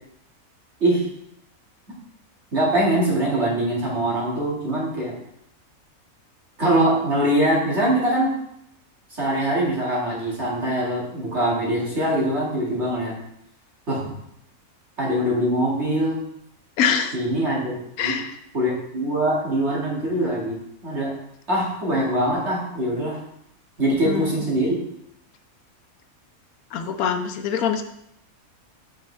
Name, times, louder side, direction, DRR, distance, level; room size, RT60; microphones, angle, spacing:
voice 1, 2.5-5.1 6.6-8.3 9.1-13.1 13.9-14.0 15.0-16.2 17.1-18.2 18.5-20.6 20.8-21.1 21.5-23.2 23.8-24.8, right 1 dB, 50° right, -5 dB, 2.3 m, -23 dB
voice 2, 16.8-17.1 18.0-18.3 24.1-24.4 26.7-27.8, left 7 dB, 85° left, 7 dB, 1.1 m, -24 dB
7.3 x 5.2 x 3.3 m, 0.75 s
omnidirectional pair, 1.5 m